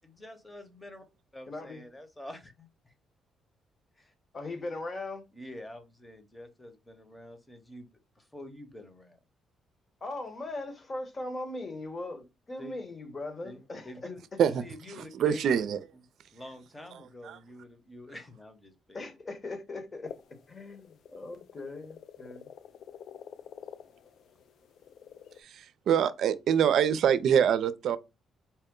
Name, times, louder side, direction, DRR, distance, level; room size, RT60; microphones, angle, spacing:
voice 1, 0.0-1.0 1.3-2.9 4.0-4.1 5.3-7.9 8.2-9.2 12.6-12.8 13.4-15.4 15.9-16.0 16.3-19.0, left 1 dB, 15° left, 1.0 m, -47 dB
voice 2, 1.5-1.8 4.3-5.2 10.0-13.9 18.9-22.5, left 2 dB, 35° left, 1.1 m, -39 dB
voice 3, 15.1-15.8 17.2-17.4 25.4-28.0, right 8 dB, 70° right, 0.4 m, -25 dB
sound 1, 20.1-25.4, left 8 dB, 70° left, 0.3 m, -49 dB
4.3 x 2.2 x 3.6 m
cardioid pair, 90°, 0 cm